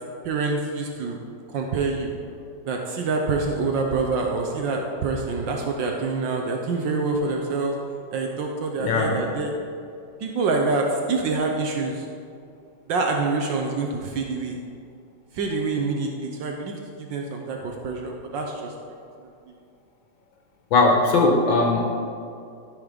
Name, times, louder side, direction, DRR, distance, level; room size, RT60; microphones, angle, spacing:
voice 1, 0.2-1.2 1.5-2.1 2.6-7.7 8.1-9.5 10.2-12.0 12.9-14.6 15.3-18.7 19.2-19.3, right 3 dB, 75° right, 1 dB, 1.5 m, -26 dB
voice 2, 8.8-9.1 20.7-22.0, left 3 dB, 80° left, 2 dB, 1.6 m, -19 dB
13.5 x 4.8 x 5.1 m, 2.4 s
omnidirectional pair, 2.1 m